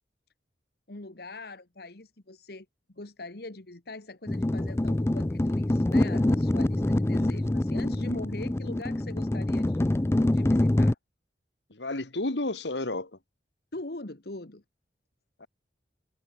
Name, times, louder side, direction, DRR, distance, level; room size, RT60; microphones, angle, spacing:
voice 1, 0.9-9.9 10.3-11.0 13.7-14.6, left 2 dB, 60° left, 1.6 m, -42 dB
sound 1, 4.3-10.9, left 1 dB, 15° left, 0.4 m, -25 dB
voice 2, 11.7-13.1 15.4-15.5, left 2 dB, 75° left, 2.1 m, -32 dB
head